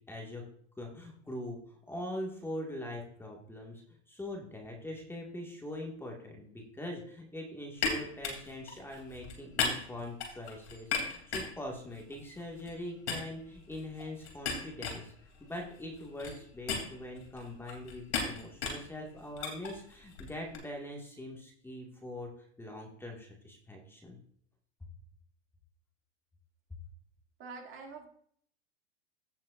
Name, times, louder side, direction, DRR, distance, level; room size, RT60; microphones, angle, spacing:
voice 1, 0.1-0.4 0.8-15.1 15.4-24.2, left 1 dB, 5° left, -1 dB, 2.0 m, -42 dB
sound 1, 7.8-12.8 13.1-20.6, left 5 dB, 70° left, 3.2 m, -38 dB
voice 2, 27.4-28.1, right 4 dB, 35° right, 1 dB, 2.5 m, -45 dB
16.0 x 7.2 x 2.6 m, 0.62 s
hypercardioid pair, 100°, 34 cm